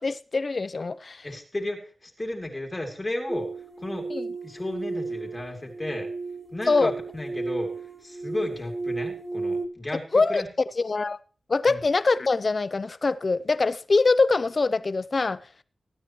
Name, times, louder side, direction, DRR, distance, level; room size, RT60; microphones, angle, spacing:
voice 1, 0.0-1.3 4.1-4.3 6.7-6.9 10.1-10.4 10.8-11.2 11.5-15.5, left 3 dB, 50° left, 0.6 m, -23 dB
voice 2, 1.2-3.5 3.8-4.1 4.4-6.1 6.5-7.7 8.0-10.5 11.6-11.8, left 1 dB, 25° left, 2.8 m, -33 dB
sound 1, 3.3-9.7, right 3 dB, 15° right, 1.0 m, -33 dB
21.0 x 9.2 x 3.1 m
cardioid pair, 65°, 0 cm